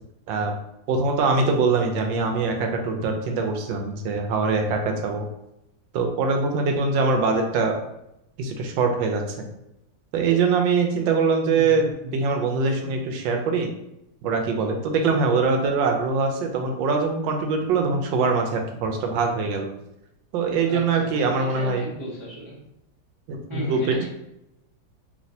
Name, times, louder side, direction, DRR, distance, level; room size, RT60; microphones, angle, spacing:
voice 1, 0.9-5.3 5.9-7.8 8.4-9.5 10.1-13.7 14.2-19.7 20.3-21.8 23.3-24.1, right 4 dB, 85° right, 3 dB, 1.3 m, -23 dB
voice 2, 11.5-11.8 20.6-22.5 23.5-24.0, equal, 50° right, -9 dB, 0.3 m, -34 dB
3.1 x 2.8 x 2.7 m, 0.84 s
omnidirectional pair, 2.0 m